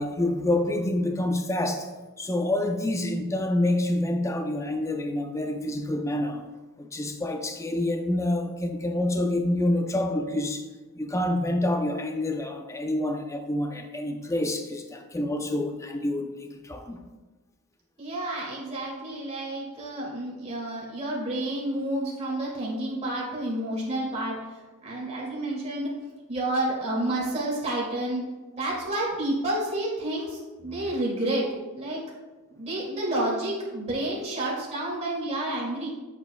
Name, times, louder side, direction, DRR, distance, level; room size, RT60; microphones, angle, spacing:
voice 1, 0.0-1.9 2.2-6.5 6.8-10.7 11.0-17.0, left 1 dB, 15° left, 5 dB, 0.5 m, -27 dB
voice 2, 18.0-24.4 24.8-25.9 26.3-28.2 28.6-31.5 31.8-32.0 32.5-35.9, right 1 dB, 30° right, -4 dB, 2.2 m, -30 dB
8.0 x 7.4 x 2.2 m, 1.2 s
head